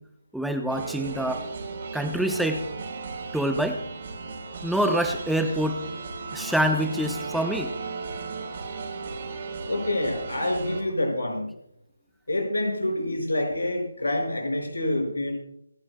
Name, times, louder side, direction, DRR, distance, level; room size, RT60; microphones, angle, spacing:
voice 1, 0.3-1.4 1.9-2.6 3.3-3.8 4.6-5.8 6.3-7.7, right 1 dB, ahead, 5 dB, 0.6 m, -26 dB
sound 1, 0.7-10.8, right 4 dB, 40° right, 3.6 m, -36 dB
voice 2, 9.7-11.5 12.3-15.3, left 1 dB, 75° left, 2 dB, 5.4 m, -27 dB
27.5 x 11.0 x 2.2 m, 0.74 s
figure-of-eight pair, 150°, 0 cm